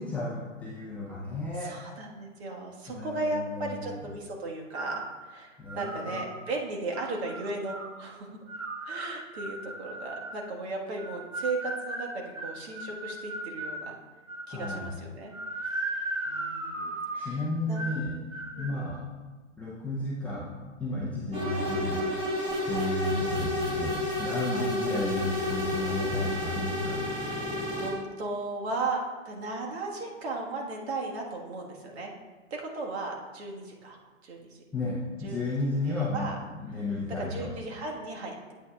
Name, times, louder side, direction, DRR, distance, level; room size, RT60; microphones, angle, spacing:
voice 1, 0.0-1.7 2.9-4.0 5.6-6.2 14.5-14.9 17.2-18.1 18.6-19.0 19.6-20.5 20.8-22.0 22.6-27.0 34.7-37.5, left 2 dB, 5° left, -8 dB, 0.6 m, -33 dB
voice 2, 1.6-8.3 8.9-13.9 14.5-15.3 15.6-15.8 16.3-17.8 18.5-18.7 22.7-22.9 24.5-24.7 27.7-32.1 32.5-34.0 34.2-34.6 35.2-35.5 35.8-36.3 36.7-36.8 37.1-38.5, right 2 dB, 55° right, 0 dB, 1.5 m, -36 dB
sound 1, 4.7-5.1 5.7-6.3 6.9-7.9 8.5-10.4 11.0-13.8 14.3-14.9 15.3-17.3 17.8-18.0 18.3-18.7, right 2 dB, 85° right, 1.5 m, -36 dB
sound 2, 21.3-27.9, left 1 dB, 10° right, 1.5 m, -31 dB
8.5 x 8.4 x 2.3 m, 1.3 s
hypercardioid pair, 130°, 39 cm